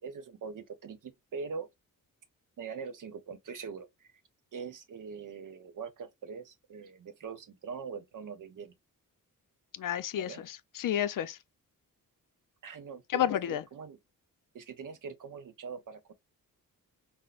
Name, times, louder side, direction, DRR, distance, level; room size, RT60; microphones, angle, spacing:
voice 1, 0.0-1.7 2.6-4.1 4.5-8.7 10.1-10.4 12.6-14.0 14.5-16.1, right 5 dB, 65° right, 0.8 m, -42 dB
voice 2, 9.8-11.4 13.1-13.6, left 11 dB, 65° left, 0.5 m, -31 dB
5.8 x 2.1 x 2.4 m
wide cardioid pair, 180°, 34 cm